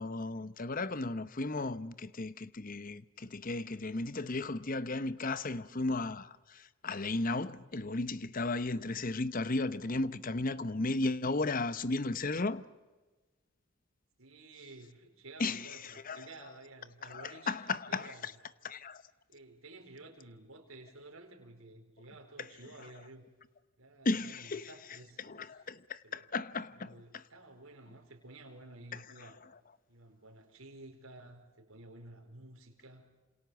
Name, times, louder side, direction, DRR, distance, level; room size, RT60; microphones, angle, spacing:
voice 1, 0.0-12.6 15.4-16.3 17.1-18.3 18.6-19.0 24.0-24.7 25.2-27.2, left 2 dB, 40° left, 0.8 m, -35 dB
voice 2, 9.8-10.2 14.2-17.6 17.9-18.4 19.3-23.3 23.8-25.2 26.0-26.3 26.8-29.4 29.9-33.1, right 2 dB, 65° right, 4.5 m, -53 dB
28.5 x 27.5 x 7.1 m
head